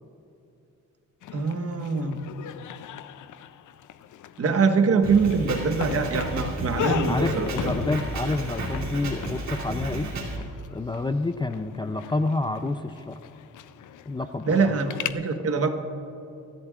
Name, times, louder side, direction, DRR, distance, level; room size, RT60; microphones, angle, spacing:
sound 1, 1.2-15.1, left 10 dB, 80° left, 0.5 m, -37 dB
voice 1, 1.3-2.3 4.4-7.7 14.5-15.7, right 4 dB, 50° right, 6 dB, 1.2 m, -24 dB
Drum kit, 5.0-10.4, right 3 dB, 70° right, 2.8 m, -32 dB
voice 2, 7.1-13.2 14.1-14.8, left 2 dB, 15° left, 9 dB, 0.4 m, -29 dB
24.5 x 14.5 x 2.4 m, 2.7 s
cardioid pair, 110°, 30 cm